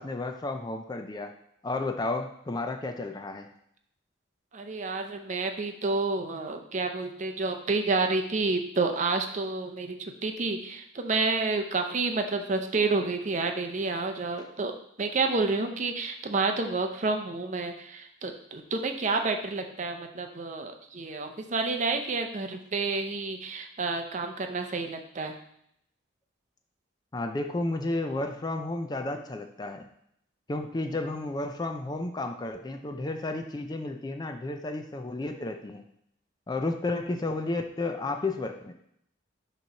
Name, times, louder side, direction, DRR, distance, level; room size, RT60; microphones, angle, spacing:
voice 1, 0.0-1.4 1.6-3.5 27.1-29.9 30.5-35.8 36.5-38.7, left 2 dB, 20° left, 6 dB, 0.4 m, -32 dB
voice 2, 4.5-14.7 15.0-25.4, right 3 dB, 40° right, 5 dB, 0.6 m, -29 dB
6.6 x 3.1 x 5.6 m, 0.74 s
head